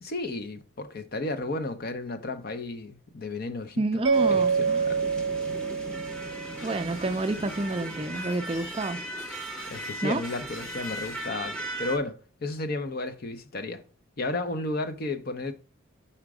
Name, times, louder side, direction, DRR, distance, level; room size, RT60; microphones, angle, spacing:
voice 1, 0.0-4.0 4.3-5.0 9.7-13.8 14.2-15.5, left 2 dB, 45° left, 0.6 m, -33 dB
voice 2, 3.8-4.9 6.6-9.0 10.0-10.2, right 2 dB, 25° right, 0.4 m, -29 dB
Mallet percussion, 4.0-7.0, right 5 dB, 60° right, 0.7 m, -27 dB
sound 1, 4.1-12.0, right 1 dB, 5° left, 0.8 m, -38 dB
Shatter, 6.6-11.3, left 2 dB, 80° left, 1.6 m, -47 dB
5.0 x 4.4 x 4.7 m
head